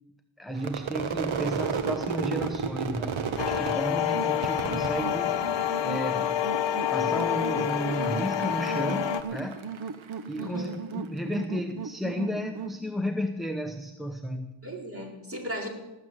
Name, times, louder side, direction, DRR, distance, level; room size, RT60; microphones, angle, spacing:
voice 1, 0.4-6.4 6.9-9.6 10.3-14.5, equal, ahead, 5 dB, 0.8 m, -33 dB
Crowd / Fireworks, 0.6-6.0 6.3-6.9 7.2-10.7, right 6 dB, 70° right, 1.4 m, -33 dB
sound 1, 3.4-9.2, left 10 dB, 60° left, 0.9 m, -28 dB
voice 2, 3.9-4.4 10.4-10.8 14.6-15.7, equal, 25° right, 0 dB, 4.2 m, -37 dB
sound 2, 4.1-12.8, right 6 dB, 50° right, 0.9 m, -38 dB
18.5 x 7.6 x 8.0 m, 1.0 s
wide cardioid pair, 100°, 48 cm